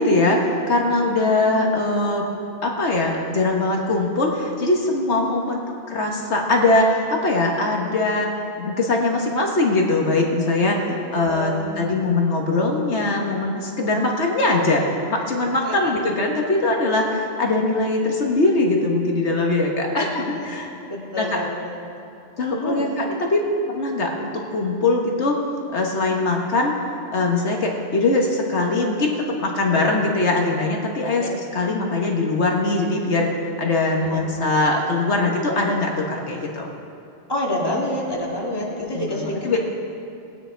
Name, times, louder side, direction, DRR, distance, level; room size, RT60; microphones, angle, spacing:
voice 1, 0.0-2.3 2.6-5.6 5.9-8.3 8.6-20.7 21.1-21.4 22.4-23.4 23.7-25.4 25.7-26.7 27.1-29.1 29.4-31.2 31.5-33.3 33.6-36.7 38.9-39.6, left 2 dB, 75° left, 0 dB, 1.5 m, -21 dB
voice 2, 10.9-11.8 15.6-15.9 20.0-20.5 20.9-21.8 22.5-22.9 31.2-31.3 33.9-34.2 37.3-39.6, left 1 dB, 20° left, -3 dB, 2.1 m, -28 dB
19.5 x 9.3 x 4.5 m, 2.6 s
omnidirectional pair, 1.2 m